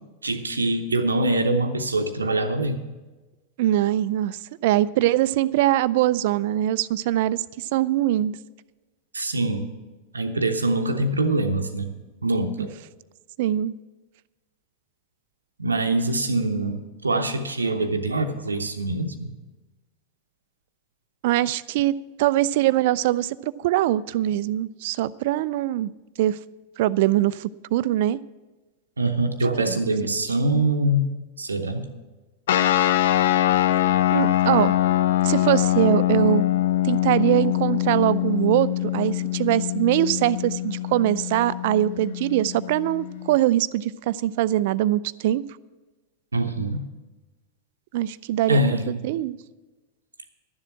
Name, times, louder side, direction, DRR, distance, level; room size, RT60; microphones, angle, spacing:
voice 1, 0.2-2.8 9.1-9.7 10.1-11.9 12.2-12.7 15.6-19.3 29.0-31.9 46.3-46.9 48.5-49.0, right 2 dB, 75° right, 7 dB, 0.7 m, -24 dB
voice 2, 3.6-7.4 7.7-8.4 13.4-13.7 21.2-25.9 26.2-26.4 26.8-28.2 29.7-29.8 34.1-34.7 35.2-36.4 36.8-45.4 47.9-48.6 48.9-49.4, right 14 dB, 50° right, 19 dB, 0.3 m, -22 dB
sound 1, 32.5-43.4, left 13 dB, 60° left, 0.5 m, -23 dB
12.0 x 7.4 x 7.4 m, 1.2 s
figure-of-eight pair, 90°, 0 cm